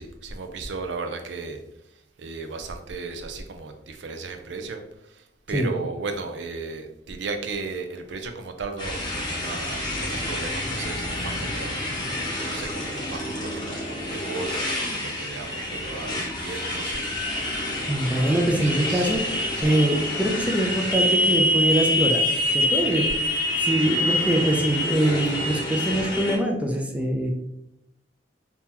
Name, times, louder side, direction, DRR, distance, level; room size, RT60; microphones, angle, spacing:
voice 1, 0.0-1.6 2.2-11.8 12.4-17.0 18.6-19.1 19.6-19.7 22.8-23.0, right 4 dB, 75° right, 6 dB, 0.5 m, -35 dB
Motorcycle, 8.8-26.4, left 1 dB, 25° left, 1.0 m, -27 dB
voice 2, 17.9-22.2 22.5-23.3 23.6-27.3, right 1 dB, 10° right, 1 dB, 0.4 m, -24 dB
2.8 x 2.8 x 3.7 m, 0.83 s
head